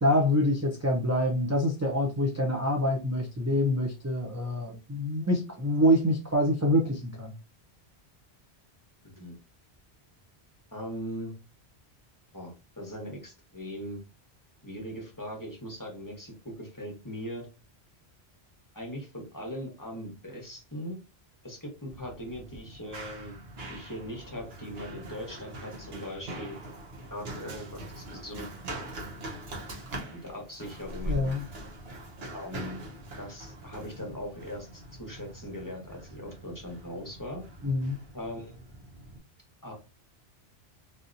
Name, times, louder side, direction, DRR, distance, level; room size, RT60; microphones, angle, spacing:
voice 1, 0.0-7.3 31.1-31.4 37.6-38.0, left 1 dB, 25° right, -1 dB, 0.4 m, -26 dB
voice 2, 9.0-9.4 10.7-11.3 12.3-14.0 14.6-17.5 18.7-21.0 21.4-23.4 23.7-26.6 27.1-28.5 30.2-31.2 32.3-32.8 33.2-37.4 38.1-38.5 39.6-39.7, equal, 20° left, 0 dB, 1.0 m, -40 dB
Run, 21.9-39.2, right 1 dB, 70° right, 1.2 m, -42 dB
3.4 x 2.8 x 2.5 m, 0.30 s
omnidirectional pair, 1.1 m